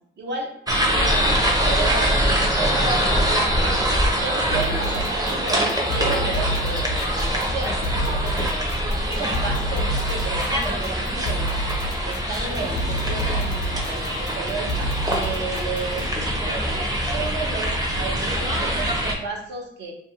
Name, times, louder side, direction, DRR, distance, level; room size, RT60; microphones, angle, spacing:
voice 1, 0.2-0.5 0.9-3.8 4.1-8.7 9.0-11.5 12.0-16.1 16.4-19.9, right 4 dB, 60° right, 0 dB, 0.8 m, -33 dB
sound 1, 0.7-19.1, equal, 20° right, 0.6 m, -24 dB
sound 2, 4.5-16.1, equal, 60° left, 0.4 m, -30 dB
2.5 x 2.4 x 2.8 m, 0.72 s
cardioid pair, 90°, 20 cm